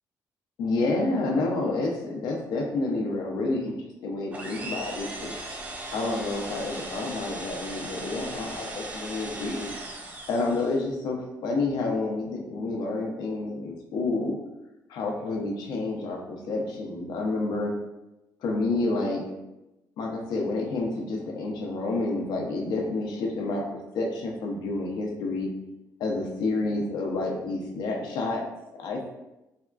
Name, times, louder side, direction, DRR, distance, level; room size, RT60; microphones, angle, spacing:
voice 1, 0.6-3.7 4.0-5.3 5.9-9.7 10.3-14.4 14.9-17.7 18.4-19.2 20.0-23.6 23.9-25.5 26.0-28.4 28.7-29.1, left 2 dB, 85° left, 0 dB, 0.5 m, -29 dB
sound 1, 4.3-10.8, right 2 dB, 20° right, 0.4 m, -38 dB
3.5 x 2.2 x 2.3 m, 0.96 s
cardioid pair, 175°, 7 cm